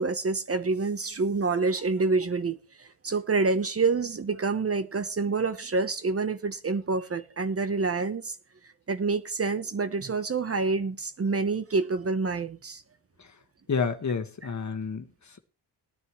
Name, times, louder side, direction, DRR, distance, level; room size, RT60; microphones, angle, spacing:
voice 1, 0.0-8.4 8.9-12.8, right 4 dB, 35° right, 0.9 m, -27 dB
voice 2, 13.7-15.4, left 5 dB, 45° left, 1.5 m, -30 dB
19.0 x 9.8 x 3.1 m
cardioid pair, 80°, 40 cm